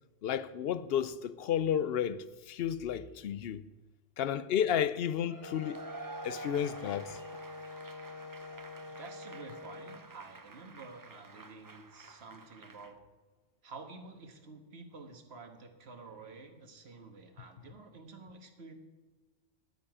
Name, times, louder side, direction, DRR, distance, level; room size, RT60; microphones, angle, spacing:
voice 1, 0.2-3.6 4.2-5.8 6.2-7.2, left 9 dB, 70° left, 0.8 m, -32 dB
Cheering / Applause / Crowd, 5.3-12.9, right 3 dB, 25° right, 0.5 m, -49 dB
Wind instrument woodwind instrument, 5.4-10.0, left 3 dB, 35° left, 0.8 m, -46 dB
voice 2, 8.9-13.0 13.6-18.7, right 4 dB, 70° right, 1.6 m, -50 dB
13.5 x 10.0 x 4.9 m
omnidirectional pair, 1.1 m